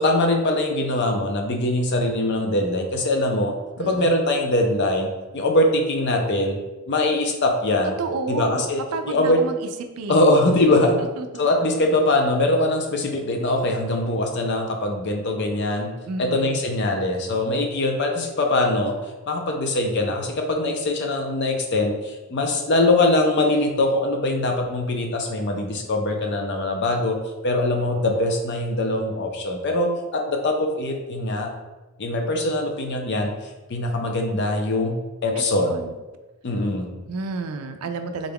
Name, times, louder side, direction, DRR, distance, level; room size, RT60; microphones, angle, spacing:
voice 1, 0.0-3.5 3.8-6.6 6.9-7.9 8.3-8.8 9.1-9.4 10.1-11.0 11.4-15.9 16.2-19.0 19.3-27.2 27.4-31.5 32.0-33.3 33.7-35.0 35.2-35.8 36.4-36.9, left 2 dB, 50° left, 3 dB, 0.5 m, -22 dB
voice 2, 3.8-4.2 8.0-8.6 8.9-9.7 10.0-10.3 10.8-11.5 16.1-16.6 35.4-35.9 37.1-38.3, right 3 dB, 80° right, 7 dB, 0.4 m, -31 dB
3.8 x 2.3 x 3.5 m, 1.2 s
head